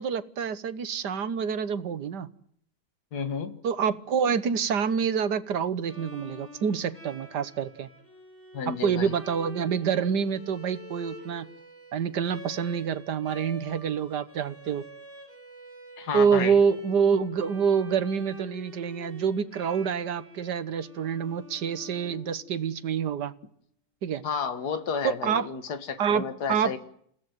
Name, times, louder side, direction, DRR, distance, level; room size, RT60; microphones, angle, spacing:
voice 1, 0.0-2.3 3.6-7.9 8.7-11.5 11.9-14.8 16.1-23.3 24.0-24.2 25.0-25.5 26.0-26.7, right 7 dB, 80° right, 14 dB, 1.8 m, -27 dB
voice 2, 3.1-3.6 8.5-9.1 16.0-16.5 24.2-26.8, left 6 dB, 70° left, 10 dB, 2.1 m, -31 dB
Bowed string instrument, 5.8-22.7, equal, 5° left, 7.5 m, -47 dB
29.0 x 17.0 x 9.4 m, 0.67 s
omnidirectional pair, 1.8 m